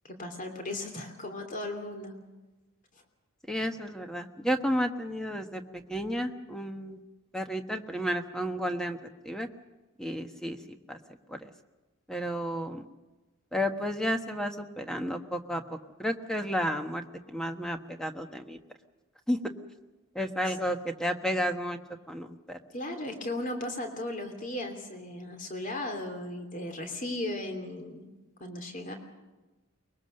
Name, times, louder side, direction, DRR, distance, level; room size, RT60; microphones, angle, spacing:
voice 1, 0.0-2.1 20.5-20.6 22.7-28.1 28.4-28.9, left 1 dB, 35° left, 5 dB, 3.0 m, -36 dB
voice 2, 3.5-7.0 7.3-9.5 10.0-11.0 11.3-11.5 12.1-12.8 13.5-17.0 17.3-18.6 19.3-19.4 20.1-21.8 22.1-22.6, equal, 5° left, 5 dB, 1.2 m, -32 dB
24.0 x 21.5 x 6.7 m, 1.1 s
head